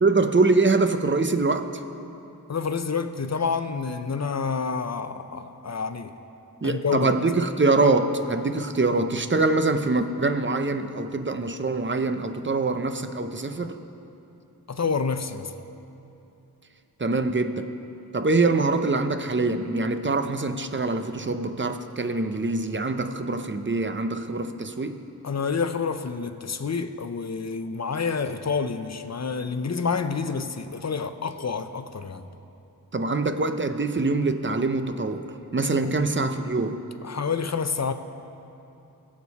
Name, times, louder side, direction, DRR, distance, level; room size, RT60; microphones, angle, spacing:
voice 1, 0.0-1.7 6.6-13.8 17.0-17.7 18.1-25.0 32.9-36.8, right 3 dB, 30° right, 9 dB, 0.7 m, -24 dB
voice 2, 2.5-6.1 6.6-7.1 14.7-15.5 25.2-32.2 35.8-35.9 37.0-37.9, left 5 dB, 45° left, 9 dB, 0.7 m, -28 dB
21.0 x 7.5 x 4.1 m, 2.8 s
wide cardioid pair, 60°, 39 cm